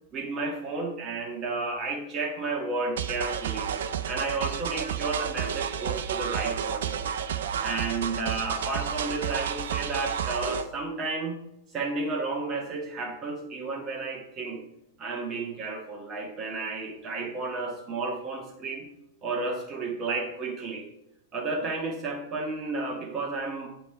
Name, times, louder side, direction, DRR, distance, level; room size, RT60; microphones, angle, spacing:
voice 1, 0.1-3.7 4.0-7.1 7.6-11.4 11.7-14.6 15.0-18.9 19.2-20.9 21.3-23.7, right 3 dB, 30° right, 2 dB, 1.6 m, -32 dB
sound 1, 3.0-10.7, right 8 dB, 60° right, 0.5 m, -31 dB
8.8 x 3.5 x 4.4 m, 0.86 s
figure-of-eight pair, 95°, 0 cm